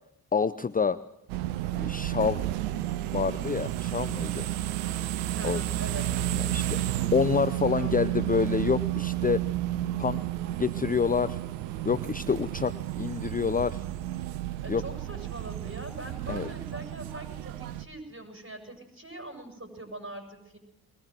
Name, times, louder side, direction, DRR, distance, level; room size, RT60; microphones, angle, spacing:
voice 1, 0.3-1.0 1.7-2.4 2.7-4.5 5.4-5.6 6.3-9.4 10.0-10.2 10.6-11.4 11.8-13.8 14.7-14.8 16.3-16.5, left 5 dB, 20° left, 16 dB, 0.7 m, -27 dB
sound 1, 1.3-17.9, right 14 dB, 85° right, 1.0 m, -32 dB
voice 2, 5.3-6.1 7.8-8.2 14.6-20.6, right 2 dB, 25° right, 5 dB, 7.3 m, -42 dB
21.5 x 18.5 x 7.7 m, 0.84 s
hypercardioid pair, 40°, 46 cm